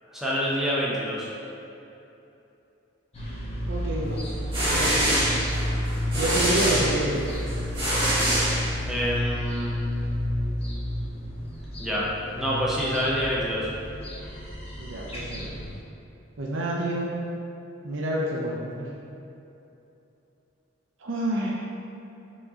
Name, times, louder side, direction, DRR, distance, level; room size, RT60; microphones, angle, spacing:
voice 1, 0.1-1.3 8.9-9.8 11.8-13.7, equal, ahead, -7 dB, 0.5 m, -27 dB
sound 1, 3.1-15.8, equal, 30° left, 0.9 m, -31 dB
voice 2, 3.7-4.2 4.7-5.2 6.1-7.3 14.8-15.5 16.4-17.1 17.8-18.9 21.0-21.5, right 1 dB, 75° right, -3 dB, 0.5 m, -28 dB
sound 2, 4.2-9.1, right 1 dB, 25° right, 1.4 m, -26 dB
4.6 x 4.3 x 2.7 m, 2.9 s
head